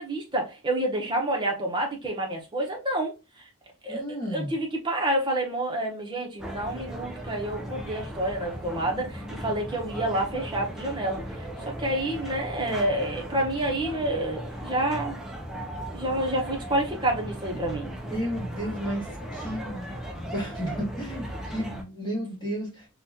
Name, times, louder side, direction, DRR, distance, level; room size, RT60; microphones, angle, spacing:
voice 1, 0.0-3.1 3.8-4.0 4.3-15.2 15.9-17.9, right 1 dB, 20° right, 0.8 m, -28 dB
voice 2, 3.9-4.6 18.1-22.9, equal, 20° left, 1.2 m, -33 dB
sound 1, 6.4-21.8, equal, ahead, 0.4 m, -37 dB
4.0 x 2.3 x 2.7 m
head